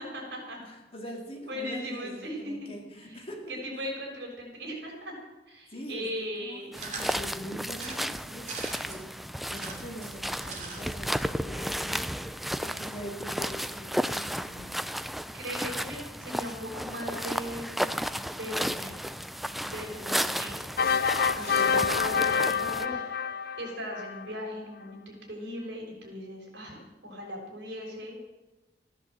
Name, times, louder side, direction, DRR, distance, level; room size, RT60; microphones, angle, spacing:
voice 1, 0.0-0.6 1.5-2.5 3.0-5.2 5.5-6.7 15.3-19.0 19.7-20.7 21.3-23.0 23.6-28.2, equal, 70° right, -1 dB, 6.1 m, -38 dB
voice 2, 0.6-3.6 5.7-15.0 21.6-22.3, equal, 35° left, 1 dB, 2.9 m, -43 dB
sound 1, 6.7-22.9, equal, ahead, 0.4 m, -33 dB
sound 2, 6.8-7.2 7.7-9.0 9.5-10.8 11.1-11.2 11.4-11.5, right 4 dB, 45° right, 3.0 m, -40 dB
sound 3, 20.8-24.2, left 6 dB, 60° left, 0.6 m, -27 dB
15.5 x 10.5 x 7.7 m, 1.1 s
head